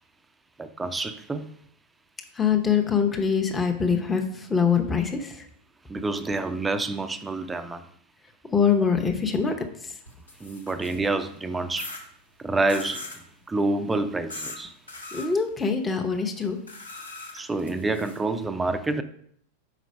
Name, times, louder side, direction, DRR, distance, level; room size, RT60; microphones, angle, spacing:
voice 1, 0.6-1.6 5.9-7.9 10.4-12.1 12.4-14.8 17.3-19.0, right 2 dB, 10° right, 10 dB, 0.5 m, -28 dB
voice 2, 2.4-5.4 8.4-9.5 15.1-16.6, left 6 dB, 15° left, 4 dB, 0.8 m, -23 dB
sound 1, 10.1-11.1 11.8-12.0 12.7-13.2 14.3-14.6 14.9-15.3 16.7-18.2, left 2 dB, 80° left, 1.2 m, -39 dB
5.1 x 4.7 x 5.4 m, 0.68 s
figure-of-eight pair, 90°, 0 cm